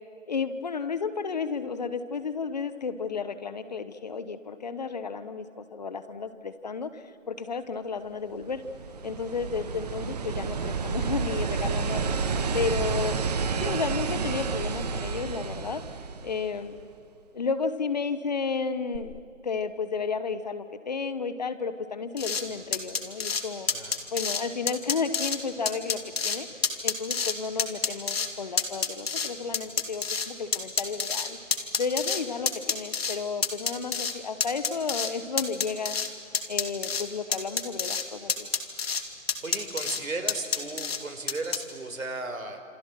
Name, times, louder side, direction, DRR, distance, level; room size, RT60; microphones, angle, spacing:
voice 1, 0.3-8.6 9.0-12.1 12.5-13.2 13.6-15.8 16.2-16.8 17.3-23.7 24.1-26.5 26.8-31.4 31.8-36.0 36.5-38.5, left 5 dB, 30° left, 12 dB, 1.0 m, -32 dB
sound 1, 8.3-16.8 18.9-19.0, right 5 dB, 30° right, 1.4 m, -30 dB
sound 2, 22.2-22.4 22.7-23.4 23.7-24.4 24.7-25.4 25.7-26.4 26.6-27.3 27.6-28.3 28.6-30.3 30.5-32.2 32.5-33.2 33.4-34.1 34.4-35.1 35.4-36.1 36.3-37.0 37.3-38.0 38.3-39.0 39.3-40.0 40.3-41.0 41.3-41.6, left 6 dB, 50° left, 2.3 m, -28 dB
voice 2, 23.7-24.1 39.4-42.6, right 2 dB, 80° right, 5 dB, 4.8 m, -35 dB
28.0 x 26.0 x 7.6 m, 2.3 s
figure-of-eight pair, 160°, 40 cm